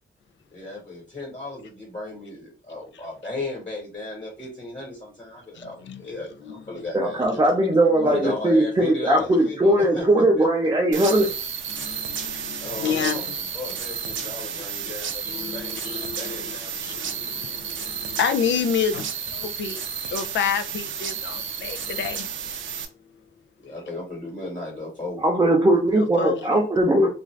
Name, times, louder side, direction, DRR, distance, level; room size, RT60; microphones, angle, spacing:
voice 1, 0.5-7.4 8.0-10.5 12.6-16.8 23.6-25.3, left 2 dB, 35° left, 1.3 m, -35 dB
voice 2, 5.6-6.0 6.4-6.6 8.0-8.1 9.2-9.3 11.1-11.2 11.7-13.4 14.2-14.3 14.6-14.9 15.2-22.3 26.0-26.5, left 7 dB, 70° left, 0.4 m, -29 dB
voice 3, 6.9-11.3 25.2-27.1, right 1 dB, 20° right, 0.5 m, -19 dB
sound 1, 10.9-22.8, right 7 dB, 80° right, 0.5 m, -32 dB
2.4 x 2.4 x 3.1 m
wide cardioid pair, 125°, 20 cm